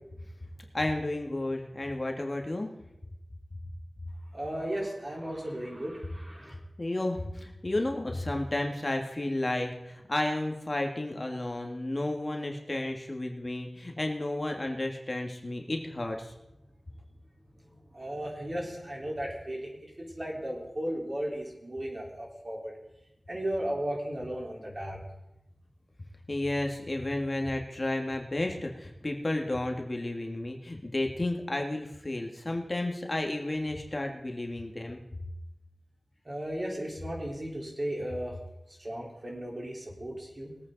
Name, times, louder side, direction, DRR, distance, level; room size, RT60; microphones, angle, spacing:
voice 1, 0.7-2.7 6.8-16.3 26.3-35.0, left 1 dB, 35° left, 3 dB, 1.8 m, -32 dB
voice 2, 4.3-6.5 17.9-19.7 20.0-22.7 23.3-25.0 36.3-38.3 38.8-40.5, right 1 dB, 40° right, -2 dB, 4.2 m, -35 dB
21.0 x 8.9 x 4.0 m, 0.89 s
wide cardioid pair, 55°, 0 cm